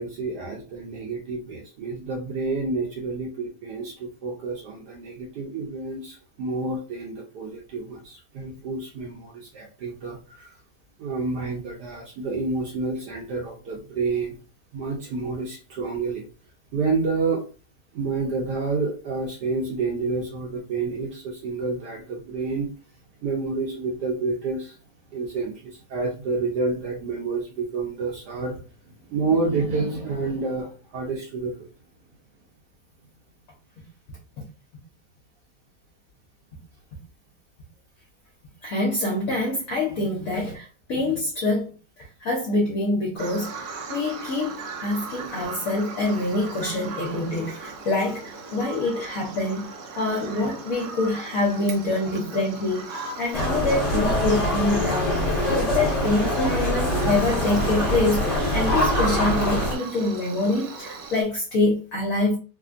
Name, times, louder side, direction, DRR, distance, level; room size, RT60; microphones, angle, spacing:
voice 1, 0.0-10.5 11.0-14.4 14.7-16.2 16.7-17.4 17.9-22.7 23.2-24.8 25.1-28.6 29.1-31.7, right 3 dB, 70° right, 1.2 m, -29 dB
voice 2, 38.6-41.7 42.2-62.4, left 2 dB, 60° left, 1.0 m, -26 dB
Bird vocalization bird call bird song, 43.2-61.2, right 4 dB, 90° right, 1.3 m, -38 dB
sound 1, 53.3-59.7, left 1 dB, 25° left, 1.0 m, -24 dB
3.3 x 2.2 x 2.4 m
omnidirectional pair, 1.9 m